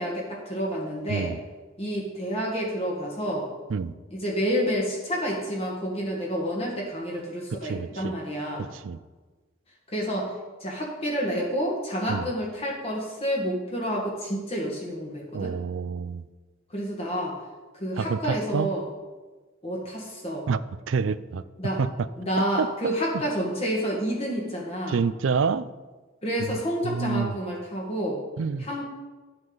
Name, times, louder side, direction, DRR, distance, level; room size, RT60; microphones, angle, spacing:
voice 1, 0.0-1.3 1.8-3.5 4.1-8.7 9.9-10.3 10.6-15.5 16.7-17.4 17.7-18.8 19.6-20.5 21.6-21.8 22.2-25.0 26.2-28.2 28.6-28.8, equal, 30° left, -2 dB, 1.6 m, -29 dB
voice 2, 1.1-1.4 3.7-3.9 7.5-8.1 8.7-9.0 12.1-12.3 15.3-16.2 18.0-18.7 20.5-20.6 20.9-21.4 21.8-21.9 22.6-22.9 24.9-25.7 26.4-26.5 26.8-27.4 28.4-28.7, right 5 dB, 65° right, 16 dB, 0.4 m, -27 dB
10.5 x 7.7 x 3.9 m, 1.3 s
head